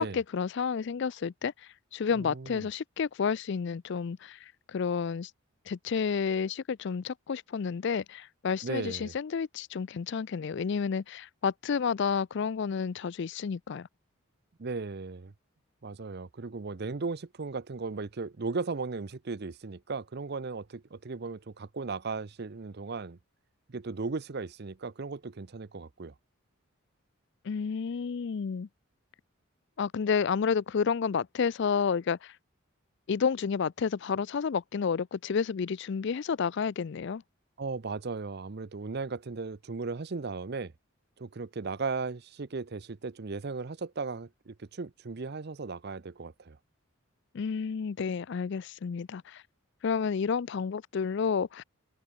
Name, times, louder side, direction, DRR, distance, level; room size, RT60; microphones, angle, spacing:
voice 1, 0.0-1.5 1.9-5.3 5.7-13.9 27.4-28.7 29.8-32.3 33.1-37.2 47.3-49.4 49.8-51.6, left 6 dB, 55° left, 0.4 m, -30 dB
voice 2, 2.1-2.7 8.6-9.1 14.6-15.3 15.8-23.2 23.7-26.1 37.6-40.7 41.2-46.6, right 4 dB, 50° right, 0.6 m, -36 dB
open air
head